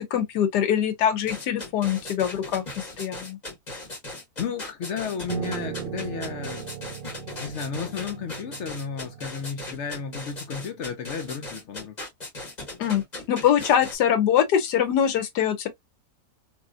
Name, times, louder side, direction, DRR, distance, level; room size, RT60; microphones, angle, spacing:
voice 1, 0.0-2.6 3.0-3.4 12.8-13.0 13.3-15.7, left 9 dB, 90° left, 1.3 m, -23 dB
sound 1, 1.2-14.0, left 2 dB, 30° left, 1.3 m, -38 dB
voice 2, 4.4-6.7 7.4-12.0, left 7 dB, 60° left, 0.8 m, -33 dB
Piano, 5.3-10.6, right 10 dB, 65° right, 0.9 m, -38 dB
3.0 x 2.7 x 2.4 m
omnidirectional pair, 1.7 m